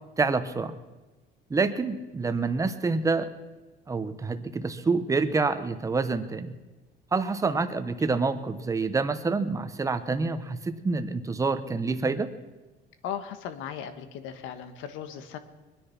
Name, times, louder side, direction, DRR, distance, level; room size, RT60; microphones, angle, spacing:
voice 1, 0.2-0.8 1.5-3.3 3.9-6.5 7.1-12.3, right 4 dB, 15° right, 10 dB, 0.9 m, -27 dB
voice 2, 7.5-7.8 13.0-15.4, left 8 dB, 85° left, 10 dB, 1.4 m, -37 dB
22.5 x 9.9 x 5.9 m, 1.2 s
cardioid pair, 145°, 19 cm